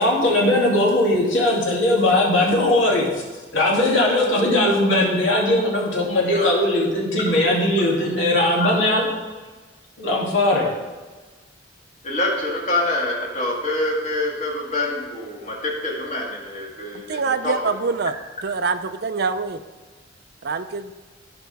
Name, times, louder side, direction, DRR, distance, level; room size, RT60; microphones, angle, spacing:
voice 1, 0.0-3.0 3.5-9.1 10.0-10.7, left 1 dB, 75° left, -4 dB, 2.6 m, -19 dB
voice 2, 12.0-17.5, left 2 dB, 35° left, -2 dB, 2.1 m, -26 dB
voice 3, 16.9-18.1 18.4-19.6 20.4-20.9, right 4 dB, 55° right, 10 dB, 0.5 m, -25 dB
15.5 x 5.2 x 3.4 m, 1.3 s
head